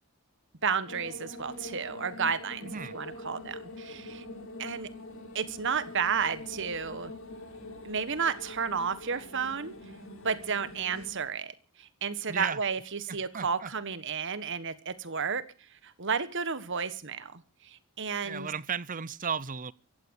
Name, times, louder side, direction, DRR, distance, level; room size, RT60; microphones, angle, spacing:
voice 1, 0.6-4.2 4.6-4.9 5.3-7.1 7.8-9.7 10.2-15.4 15.8-17.4 18.0-18.5, right 6 dB, 55° right, 1.5 m, -32 dB
sound 1, 0.9-11.1, left 2 dB, 60° left, 4.2 m, -44 dB
voice 2, 2.6-3.0 12.3-12.6 13.1-13.7 18.2-19.7, right 6 dB, 40° right, 0.7 m, -35 dB
16.0 x 13.0 x 6.5 m
head